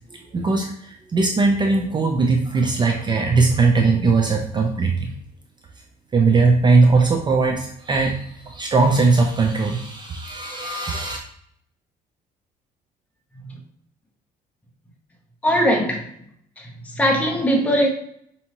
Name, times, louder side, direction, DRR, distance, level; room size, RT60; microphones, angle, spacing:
voice 1, 0.1-5.1 6.1-11.2, right 3 dB, 25° right, 0.5 m, -19 dB
voice 2, 15.4-16.1 16.6-17.9, equal, 10° left, 0.8 m, -20 dB
5.3 x 2.8 x 2.9 m
cardioid pair, 110°, 17 cm